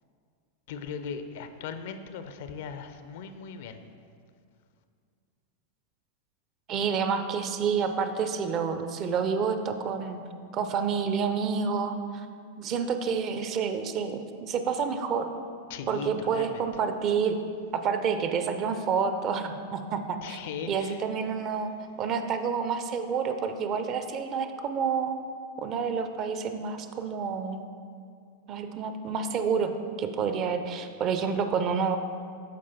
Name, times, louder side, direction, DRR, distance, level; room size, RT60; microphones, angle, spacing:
voice 1, 0.7-3.8 15.7-16.6 20.2-21.0, left 6 dB, 55° left, 9 dB, 0.4 m, -38 dB
voice 2, 6.7-10.2 10.5-12.3 12.6-15.3 15.9-17.4 17.7-20.4 20.7-21.7 22.0-25.2 25.6-27.6 28.5-29.7 30.0-32.0, right 6 dB, 35° right, 8 dB, 0.4 m, -29 dB
12.5 x 4.8 x 2.8 m, 2.3 s
figure-of-eight pair, 90°, 0 cm